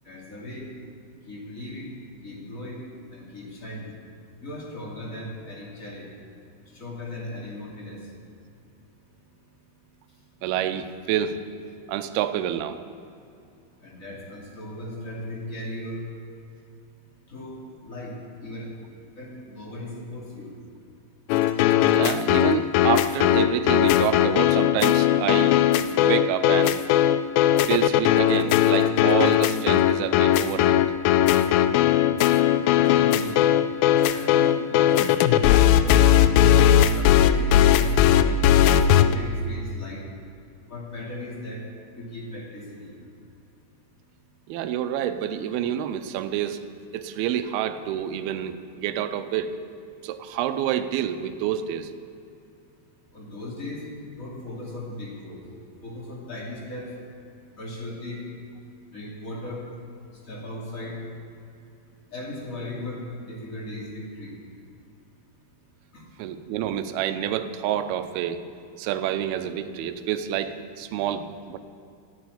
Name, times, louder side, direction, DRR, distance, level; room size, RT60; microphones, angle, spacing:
voice 1, 0.0-0.7 1.3-2.0 2.2-2.8 3.1-3.9 4.4-6.1 6.7-8.0 13.8-16.0 17.3-17.6 17.8-18.1 18.4-18.7 19.2-20.5 32.7-33.4 33.9-35.2 35.5-36.3 36.9-38.4 39.0-40.0 40.7-41.6 42.0-42.9 53.1-53.8 54.2-55.4 55.8-56.9 57.6-58.2 58.9-59.6 60.3-61.0 62.1-64.4 65.9-66.0, left 1 dB, 25° left, -3 dB, 2.5 m, -37 dB
voice 2, 10.4-11.4 11.9-12.8 21.9-25.6 26.0-26.8 27.7-30.8 44.5-46.6 46.9-49.5 50.0-51.9 66.2-68.4 68.8-71.6, right 10 dB, 80° right, 9 dB, 2.6 m, -28 dB
sound 1, 21.3-39.1, left 11 dB, 80° left, 2.2 m, -19 dB
14.0 x 9.4 x 8.5 m, 2.5 s
omnidirectional pair, 4.6 m